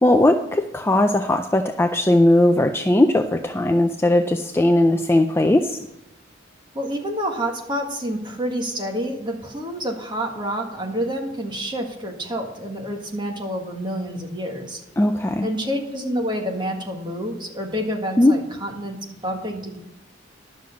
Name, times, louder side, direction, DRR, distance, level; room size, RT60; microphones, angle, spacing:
voice 1, 0.0-5.9 15.0-15.5 18.2-18.3, left 1 dB, 10° left, 6 dB, 0.4 m, -18 dB
voice 2, 6.7-14.8 15.4-19.0 19.2-19.8, equal, 25° right, 1 dB, 1.7 m, -28 dB
11.0 x 6.4 x 6.9 m, 0.87 s
head